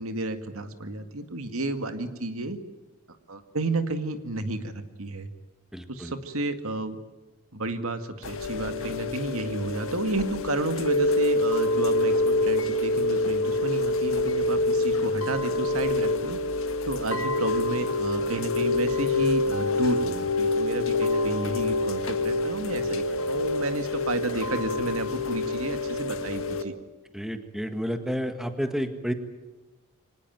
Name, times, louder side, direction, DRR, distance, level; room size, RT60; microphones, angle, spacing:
voice 1, 0.0-2.6 3.3-5.3 5.9-7.0 7.5-16.4 16.8-26.7, right 2 dB, 75° right, 8 dB, 2.0 m, -31 dB
voice 2, 5.7-6.1 27.1-29.1, equal, ahead, 7 dB, 1.7 m, -30 dB
Chime / Rain, 8.2-26.6, left 2 dB, 65° left, 1.7 m, -26 dB
25.0 x 19.0 x 9.3 m, 1.1 s
head